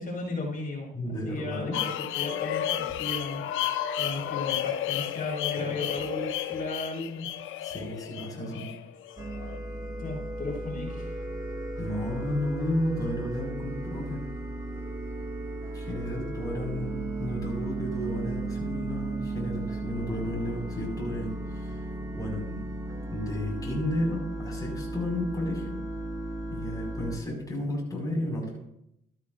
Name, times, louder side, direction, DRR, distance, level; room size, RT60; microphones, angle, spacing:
voice 1, 0.0-3.4 4.0-7.3 10.0-11.2, left 2 dB, 45° left, -2 dB, 5.4 m, -35 dB
voice 2, 0.9-1.8 5.6-5.8 7.6-8.7 11.8-14.2 15.7-21.8 22.1-22.6 23.1-25.8 26.5-28.6, left 1 dB, 20° left, -2 dB, 5.6 m, -32 dB
sound 1, 1.7-9.6, left 12 dB, 85° left, 0.7 m, -32 dB
sound 2, 9.2-27.2, right 2 dB, 15° right, 2.3 m, -35 dB
14.0 x 13.0 x 2.6 m, 0.76 s
cardioid pair, 90°, 20 cm